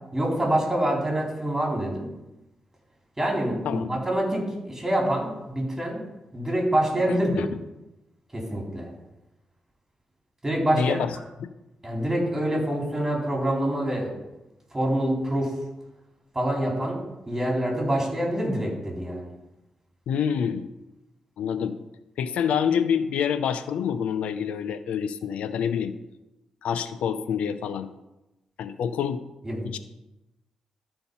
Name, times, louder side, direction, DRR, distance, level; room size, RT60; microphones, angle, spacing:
voice 1, 0.1-2.1 3.2-6.0 6.3-7.4 8.3-8.9 10.4-11.0 11.8-14.1 14.7-15.5 16.3-17.0 17.3-19.3 29.4-29.6, right 1 dB, 15° right, -2 dB, 4.0 m, -26 dB
voice 2, 7.1-7.5 10.7-11.5 20.1-20.7 21.4-21.8 22.2-26.0 26.6-27.9 28.6-29.2 29.6-29.8, left 7 dB, 85° left, 12 dB, 0.5 m, -27 dB
13.0 x 4.5 x 5.5 m, 0.98 s
cardioid pair, 65°, 2 cm